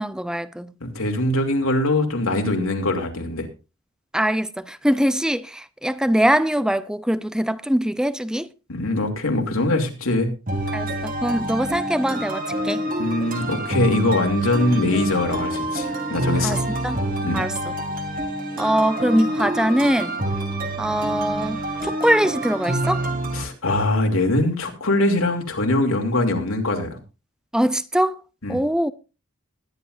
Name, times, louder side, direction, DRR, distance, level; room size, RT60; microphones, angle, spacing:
voice 1, 0.0-0.7 4.1-8.5 10.7-12.8 16.4-16.6 16.8-17.0 17.3-17.6 18.6-20.2 20.8-23.0 27.5-28.2 28.5-28.9, equal, 5° right, 0.5 m, -22 dB
voice 2, 0.8-3.5 8.7-10.3 10.9-11.0 13.0-16.6 17.2-17.4 23.3-27.0 28.4-28.6, left 2 dB, 90° left, 2.9 m, -22 dB
sound 1, 10.5-23.4, right 1 dB, 45° right, 2.5 m, -27 dB
20.5 x 10.5 x 2.6 m
head